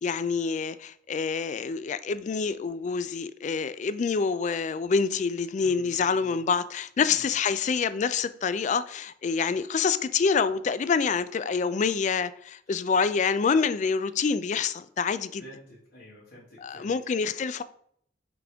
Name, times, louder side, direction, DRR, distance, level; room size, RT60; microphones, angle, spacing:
voice 1, 0.0-15.4 16.6-17.6, left 5 dB, 40° left, 0.3 m, -27 dB
voice 2, 5.6-6.4 7.0-7.3 15.4-16.9, equal, 65° left, 1.8 m, -50 dB
5.9 x 5.0 x 3.5 m
head